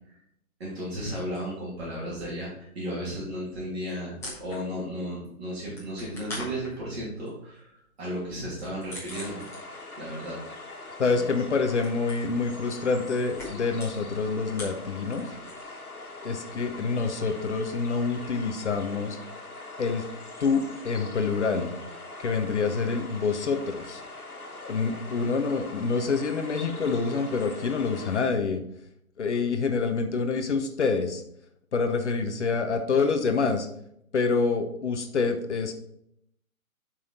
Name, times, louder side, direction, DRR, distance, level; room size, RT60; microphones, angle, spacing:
voice 1, 0.6-2.5 2.7-7.7 8.0-9.4 10.0-10.6, equal, 45° right, -6 dB, 3.1 m, -34 dB
sound 1, 1.1-2.0 2.3-5.0 5.3-10.0 10.2-15.8 16.1-19.0, left 2 dB, 5° left, 1.9 m, -45 dB
sound 2, 9.1-28.2, left 2 dB, 90° left, 1.6 m, -42 dB
voice 2, 11.0-15.2 16.2-19.2 19.8-20.0 20.4-21.7 22.2-24.0 24.6-28.6 29.2-31.2 31.7-33.7 34.1-35.7, left 4 dB, 55° left, 7 dB, 0.9 m, -27 dB
7.5 x 5.7 x 4.2 m, 0.74 s
figure-of-eight pair, 150°, 43 cm